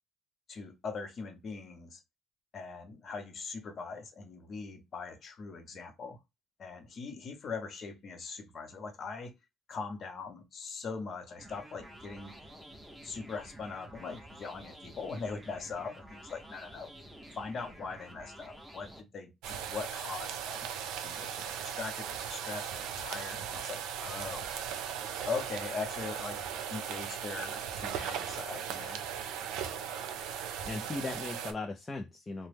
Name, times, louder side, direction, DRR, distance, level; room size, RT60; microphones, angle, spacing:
voice 1, 0.5-2.0 2.5-6.2 6.6-9.3 9.7-12.4 13.0-16.9 17.4-20.7 21.0-24.5 25.3-26.4 26.7-29.0, left 4 dB, 40° left, 0.8 m, -41 dB
sound 1, 11.4-19.0, right 1 dB, 5° right, 0.7 m, -50 dB
sound 2, 19.4-31.5, right 8 dB, 90° right, 0.5 m, -38 dB
voice 2, 30.5-32.5, left 3 dB, 20° left, 0.3 m, -38 dB
3.0 x 2.1 x 3.3 m
cardioid pair, 150°, 0 cm